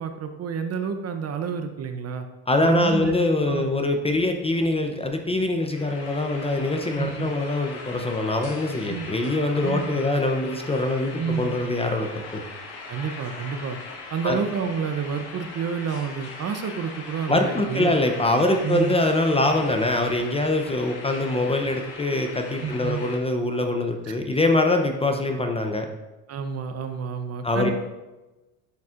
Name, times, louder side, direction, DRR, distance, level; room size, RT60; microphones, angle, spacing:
voice 1, 0.0-2.3 2.6-3.2 3.5-3.7 7.0-7.3 8.9-9.2 9.6-9.9 11.2-11.6 12.9-13.8 14.1-18.0 18.6-19.0 22.6-23.0 24.0-24.1 26.3-27.7, right 6 dB, 35° right, 7 dB, 0.6 m, -29 dB
voice 2, 2.5-12.4 14.2-14.4 17.3-25.9 27.4-27.7, left 2 dB, 15° left, 4 dB, 0.6 m, -23 dB
sound 1, 5.7-23.2, left 3 dB, 60° left, 1.6 m, -40 dB
10.5 x 4.2 x 2.5 m, 1.1 s
supercardioid pair, 95°, 43 cm